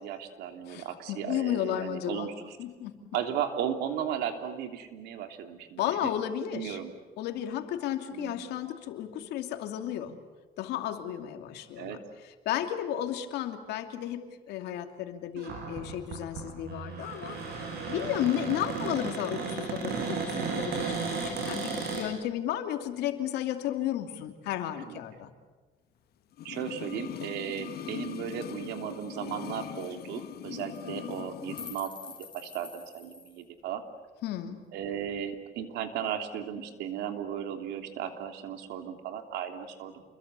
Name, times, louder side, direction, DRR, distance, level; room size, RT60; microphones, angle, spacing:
voice 1, 0.0-2.6 3.1-6.1 6.5-6.9 8.1-8.5 11.8-12.0 15.5-15.6 24.9-25.0 26.4-33.8 34.7-40.0, right 9 dB, 85° right, 6 dB, 3.1 m, -36 dB
voice 2, 0.7-2.3 2.6-2.9 5.8-6.8 7.2-10.2 10.6-12.0 12.4-25.3 34.2-34.6, left 11 dB, 85° left, 6 dB, 2.8 m, -33 dB
Cupboard open or close, 15.4-22.1, right 5 dB, 70° right, 7.5 m, -34 dB
sound 1, 26.3-31.8 32.1-32.2, left 11 dB, 70° left, 1.2 m, -41 dB
sound 2, 28.7-28.8 29.0-29.1 29.3-29.5 29.8-29.9 30.6-30.8 31.1-33.4, left 4 dB, 25° left, 6.4 m, -47 dB
29.0 x 23.0 x 8.4 m, 1.3 s
cardioid pair, 110°, 17 cm